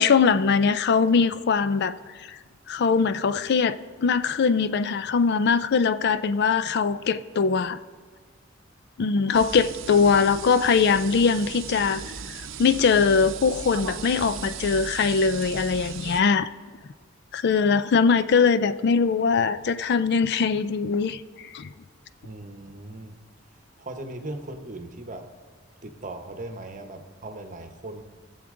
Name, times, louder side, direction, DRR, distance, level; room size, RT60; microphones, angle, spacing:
voice 1, 0.0-2.4 2.7-7.8 9.0-12.0 12.3-16.5 17.3-21.7, left 5 dB, 55° left, 13 dB, 0.4 m, -22 dB
sound 1, 9.3-16.2, right 6 dB, 70° right, 0.7 m, -37 dB
voice 2, 22.2-23.2 23.8-25.3 25.8-28.0, right 2 dB, 40° right, 6 dB, 1.0 m, -38 dB
20.5 x 7.2 x 3.8 m, 1.5 s
head